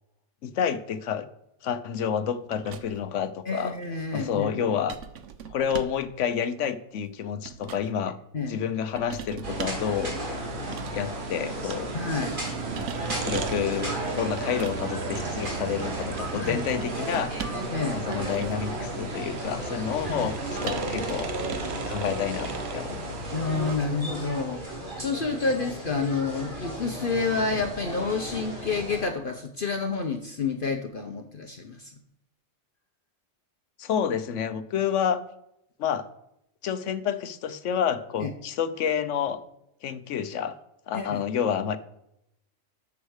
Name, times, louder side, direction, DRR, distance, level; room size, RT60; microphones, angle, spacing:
voice 1, 0.4-1.2 1.6-3.8 4.1-5.0 5.5-8.2 8.5-10.1 10.9-11.9 12.7-12.9 13.2-17.6 17.9-21.3 21.9-23.3 33.8-35.2 35.8-36.0 36.6-39.4 39.8-40.6 40.9-41.8, left 8 dB, 80° left, 12 dB, 1.1 m, -29 dB
sound 1, 2.5-3.1 4.9-6.1 7.1-7.9 9.0-9.9 10.6-11.1 12.5-13.6 14.4-14.8 16.7-17.7 18.1-18.7 20.6-21.8 22.1-22.3, right 8 dB, 85° right, 1.1 m, -40 dB
voice 2, 3.4-4.8 8.3-8.6 11.9-12.4 16.3-16.6 17.7-18.0 20.1-20.3 23.3-31.9 38.2-38.3 40.9-41.2, left 4 dB, 50° left, 5 dB, 1.0 m, -29 dB
sound 2, 9.4-29.0, right 1 dB, 45° right, 2.7 m, -35 dB
sound 3, 9.4-23.8, right 4 dB, 60° right, 1.1 m, -36 dB
8.0 x 7.2 x 6.4 m, 0.81 s
omnidirectional pair, 1.2 m